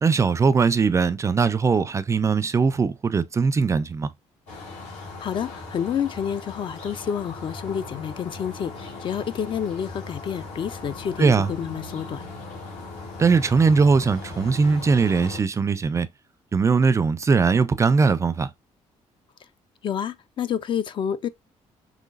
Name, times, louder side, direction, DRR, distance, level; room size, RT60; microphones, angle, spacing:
voice 1, 0.0-4.1 11.2-11.5 13.2-16.1 16.5-18.5, right 5 dB, 25° right, 0.3 m, -20 dB
sound 1, 4.5-15.4, left 3 dB, 80° left, 2.3 m, -38 dB
voice 2, 5.2-12.2 19.8-21.3, left 8 dB, 45° left, 0.4 m, -29 dB
5.6 x 3.0 x 2.4 m
cardioid pair, 120°, 12 cm